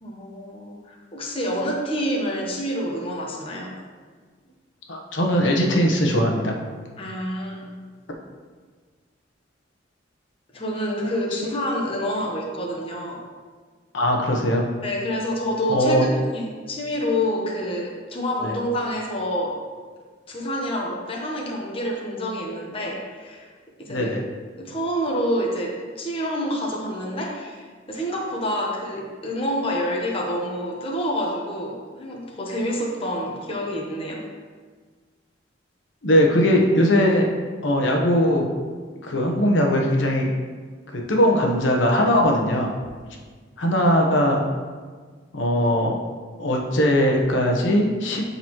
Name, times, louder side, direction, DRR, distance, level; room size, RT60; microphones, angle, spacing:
voice 1, 0.0-3.7 7.0-7.8 10.5-13.2 14.8-19.5 20.3-23.5 23.8-24.1 24.6-25.7 26.0-34.2, equal, 30° left, -2 dB, 1.1 m, -27 dB
voice 2, 4.9-6.5 11.3-11.5 13.9-14.6 15.7-16.1 18.4-18.5 23.9-24.2 36.0-37.3 37.6-38.5 39.0-40.3 40.9-42.7 43.6-44.5 45.3-46.0 46.4-48.2, equal, 80° left, 1 dB, 1.1 m, -20 dB
12.0 x 4.0 x 3.1 m, 1.5 s
head